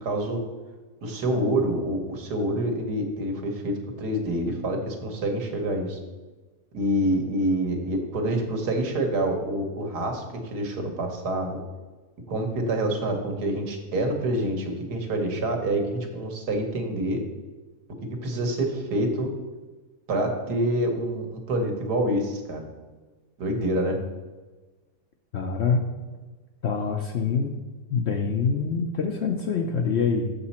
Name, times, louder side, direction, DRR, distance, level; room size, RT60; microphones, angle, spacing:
voice 1, 0.0-0.4 1.0-6.0 6.7-11.6 12.3-17.2 18.2-19.3 20.1-22.6 23.4-24.0, right 1 dB, 85° right, 3 dB, 1.7 m, -27 dB
voice 2, 25.3-25.8 26.6-27.5 27.9-30.3, left 5 dB, 65° left, 3 dB, 0.7 m, -25 dB
6.9 x 6.8 x 4.2 m, 1.3 s
omnidirectional pair, 1.7 m